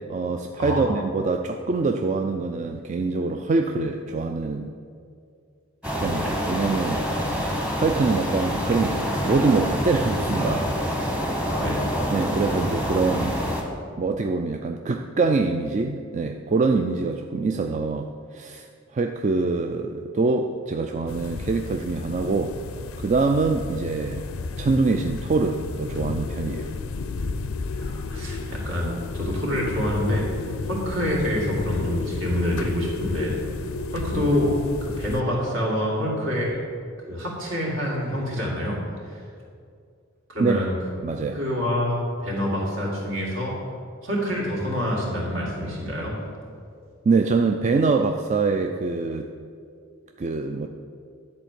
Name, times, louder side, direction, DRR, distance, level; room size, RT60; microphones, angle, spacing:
voice 1, 0.0-4.7 5.9-10.7 12.1-13.4 14.0-22.5 23.0-24.2 24.6-26.7 40.4-40.6 41.0-41.4 47.1-49.3 50.2-50.7, right 3 dB, 35° right, 4 dB, 0.3 m, -24 dB
voice 2, 0.6-0.9 11.6-11.9 27.8-30.3 30.6-33.3 33.9-34.5 34.8-36.6 37.1-38.8 39.1-39.2 40.3-40.8 41.3-43.6 44.0-46.1, left 1 dB, 65° right, -3 dB, 2.5 m, -26 dB
sound 1, 5.8-13.6, equal, 5° right, 1.0 m, -26 dB
sound 2, 21.1-35.2, left 3 dB, 85° left, 0.5 m, -32 dB
10.5 x 4.3 x 7.6 m, 2.3 s
head